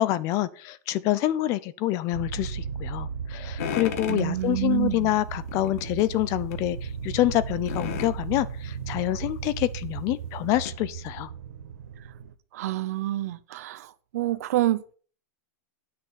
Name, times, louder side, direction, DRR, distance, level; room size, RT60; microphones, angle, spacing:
voice 1, 0.0-11.3, left 15 dB, 35° left, 0.6 m, -27 dB
sound 1, 2.1-12.3, right 6 dB, 90° right, 1.1 m, -36 dB
sound 2, 3.6-4.3 5.5-6.1 6.5-6.6 7.7-8.2 9.4-9.5 10.0-10.1 10.6-10.7, left 9 dB, 60° left, 1.3 m, -33 dB
voice 2, 4.1-5.2 12.5-14.9, right 14 dB, 65° right, 0.8 m, -28 dB
9.6 x 6.0 x 5.8 m
supercardioid pair, 155°, 9 cm